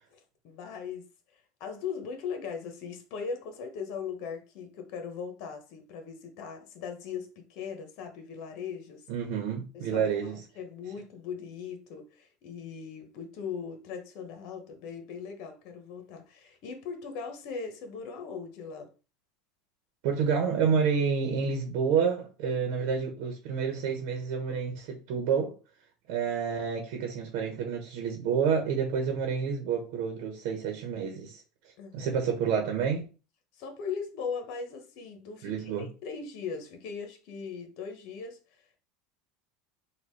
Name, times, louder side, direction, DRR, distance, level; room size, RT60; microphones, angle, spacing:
voice 1, 0.1-1.1 1.6-9.0 9.7-10.1 10.5-18.9 31.8-32.1 33.6-38.4, left 6 dB, 60° left, 1.3 m, -39 dB
voice 2, 9.1-10.4 20.0-25.5 26.1-31.4 31.9-33.1 35.4-35.9, right 6 dB, 65° right, 1.1 m, -29 dB
4.0 x 2.6 x 4.8 m
supercardioid pair, 135°, 0 cm